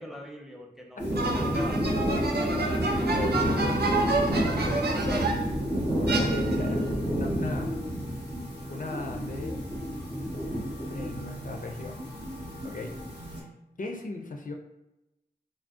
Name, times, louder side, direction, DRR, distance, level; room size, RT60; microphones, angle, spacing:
voice 1, 0.0-2.0 2.5-3.3, equal, ahead, 0 dB, 0.6 m, -43 dB
sound 1, 1.0-13.4, equal, 90° right, 0.9 m, -30 dB
sound 2, 1.2-5.6 6.1-6.8, right 3 dB, 65° right, 0.5 m, -29 dB
voice 2, 3.1-4.0 4.6-5.3 6.2-6.8 7.1-7.7 8.7-9.6 10.9-12.0 12.6-12.9 13.3-13.5 13.8-14.5, left 3 dB, 50° left, 2 dB, 0.4 m, -36 dB
2.5 x 2.0 x 3.6 m, 0.94 s
wide cardioid pair, 55°, 18 cm